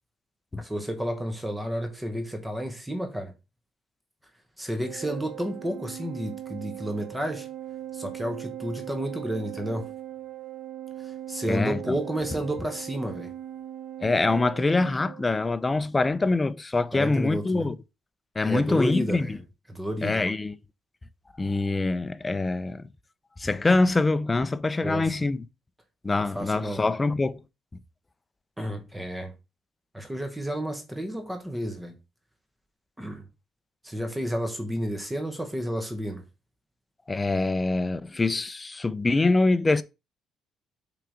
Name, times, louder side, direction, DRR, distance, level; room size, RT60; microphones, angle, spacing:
voice 1, 0.6-3.3 4.6-7.5 7.9-9.9 11.0-13.3 16.9-17.7 18.4-19.4 19.7-20.2 24.8-25.2 26.3-26.9 28.6-29.3 29.9-32.0 33.0-33.3 33.8-36.2, equal, 5° right, 0.9 m, -31 dB
Organ, 4.8-15.6, right 12 dB, 70° right, 0.4 m, -39 dB
voice 2, 11.5-11.8 14.0-17.8 18.4-19.4 20.0-20.5 21.4-22.9 23.4-25.4 26.0-27.4 37.1-39.8, left 3 dB, 15° left, 0.4 m, -24 dB
6.0 x 3.4 x 4.9 m
cardioid pair, 155°, 0 cm